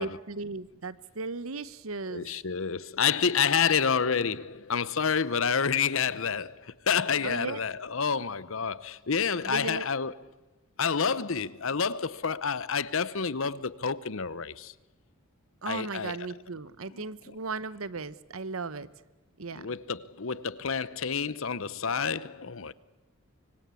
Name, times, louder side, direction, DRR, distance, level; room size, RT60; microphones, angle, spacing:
voice 1, 0.0-2.3 7.2-7.6 9.4-9.8 15.6-18.9 19.4-19.7, right 3 dB, 75° right, 1.0 m, -36 dB
voice 2, 2.1-10.1 10.8-14.7 15.7-16.3 16.9-17.0 19.5-22.7, left 6 dB, 65° left, 0.9 m, -29 dB
25.0 x 24.0 x 8.4 m
head